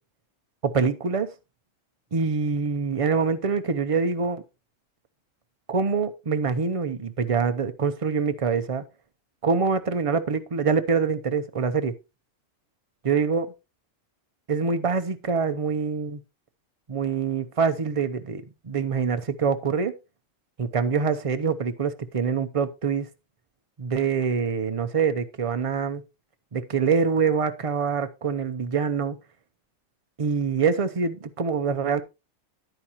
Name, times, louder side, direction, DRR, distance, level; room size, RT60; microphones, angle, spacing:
voice 1, 0.6-1.3 2.1-4.4 5.7-8.8 9.4-11.9 13.0-13.5 14.5-16.2 16.9-19.9 20.6-23.1 23.8-26.0 26.5-29.2 30.2-32.0, right 5 dB, 35° right, 0.6 m, -25 dB
9.9 x 9.1 x 3.0 m
omnidirectional pair, 1.4 m